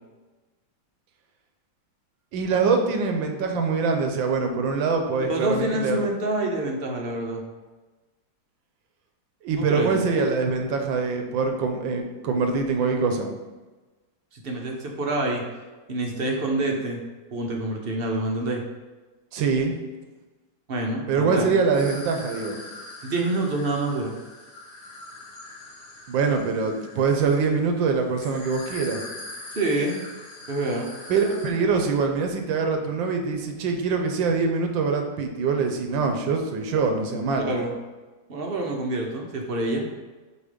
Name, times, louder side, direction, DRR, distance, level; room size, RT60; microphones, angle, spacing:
voice 1, 2.3-6.1 9.4-13.3 19.3-19.7 21.1-22.6 26.1-29.0 31.1-37.5, right 4 dB, 80° right, 4 dB, 1.6 m, -24 dB
voice 2, 5.3-7.4 9.5-9.9 14.3-15.4 15.9-17.0 17.3-18.6 20.7-21.5 23.0-24.1 29.5-30.0 30.5-30.9 37.4-37.7 38.3-39.8, right 2 dB, 45° right, 1 dB, 0.8 m, -27 dB
sound 1, 21.7-31.5, left 2 dB, 60° left, 2.2 m, -42 dB
8.2 x 3.0 x 5.1 m, 1.2 s
omnidirectional pair, 2.1 m